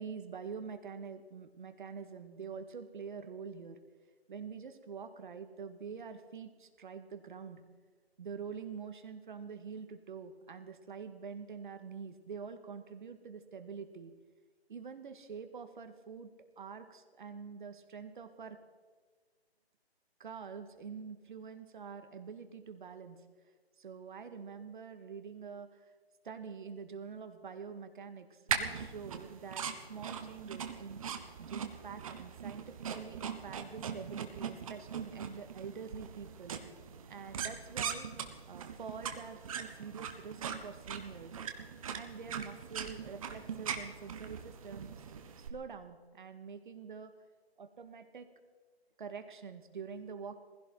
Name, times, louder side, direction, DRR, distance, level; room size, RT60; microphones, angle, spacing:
voice 1, 0.0-3.8 4.3-7.6 8.2-14.1 14.7-16.3 16.6-18.6 20.2-23.2 23.8-25.9 26.2-31.0 31.4-36.6 37.1-38.1 38.5-41.4 41.9-45.0 45.4-47.1 47.6-48.3 49.0-50.4, right 6 dB, 50° right, 8 dB, 1.8 m, -46 dB
sound 1, 28.5-45.5, right 7 dB, 30° right, 1.3 m, -41 dB
20.0 x 16.0 x 4.6 m, 1.4 s
figure-of-eight pair, 155°, 33 cm